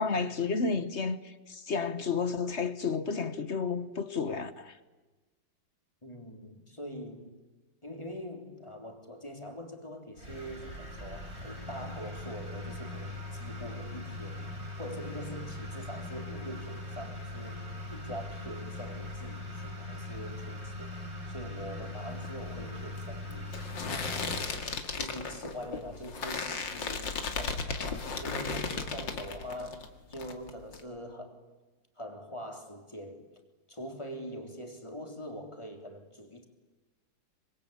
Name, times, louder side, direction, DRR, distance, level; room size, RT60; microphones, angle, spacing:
voice 1, 0.0-4.8, left 5 dB, 40° left, 1.2 m, -31 dB
voice 2, 6.0-7.4 7.8-14.5 14.8-23.5 23.9-24.4 25.0-31.4 32.0-33.3 33.7-36.4, equal, 15° left, 3.2 m, -43 dB
sound 1, 10.2-24.5, left 2 dB, 35° right, 7.4 m, -40 dB
sound 2, 22.1-29.9 30.1-30.8, left 4 dB, 75° left, 2.7 m, -36 dB
25.5 x 25.0 x 8.5 m
omnidirectional pair, 2.0 m